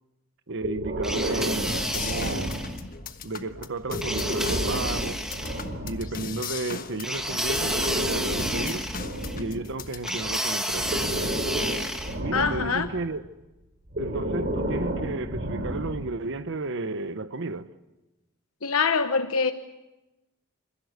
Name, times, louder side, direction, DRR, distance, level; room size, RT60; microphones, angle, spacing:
voice 1, 0.5-2.5 3.2-5.2 5.8-8.9 9.3-11.0 12.2-13.3 14.0-17.7, right 3 dB, 60° right, 1.0 m, -33 dB
Breathing, 0.6-3.0 3.8-6.2 7.3-10.1 10.7-12.9 13.9-16.2, equal, 45° right, 5.1 m, -31 dB
sound 1, 1.0-2.8 4.0-5.7 7.0-9.4 10.0-12.2, equal, 5° right, 1.8 m, -31 dB
sound 2, 1.7-10.6, left 5 dB, 45° left, 1.2 m, -39 dB
voice 2, 12.3-12.9 18.6-19.5, left 5 dB, 85° left, 1.1 m, -24 dB
28.5 x 15.5 x 8.1 m
head